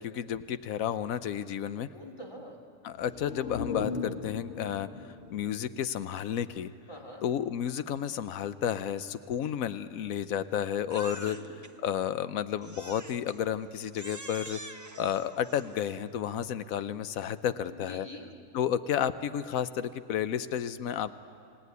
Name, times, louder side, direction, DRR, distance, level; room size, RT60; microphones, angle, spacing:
voice 1, 0.0-1.9 2.8-4.9 5.3-6.7 7.2-11.4 11.8-14.6 15.0-18.1 18.5-21.1, left 9 dB, 70° left, 13 dB, 1.2 m, -31 dB
voice 2, 1.9-2.6 6.9-7.3 11.0-11.6 17.6-18.3, left 1 dB, 20° left, 0 dB, 2.7 m, -45 dB
sound 1, 2.9-6.7 7.0-7.1, left 4 dB, 50° left, 2.0 m, -39 dB
Crying sobbing, 10.9-11.7 12.6-13.4 13.9-16.1, right 2 dB, 15° right, 0.7 m, -45 dB
27.5 x 17.5 x 9.4 m, 2.4 s
omnidirectional pair, 1.5 m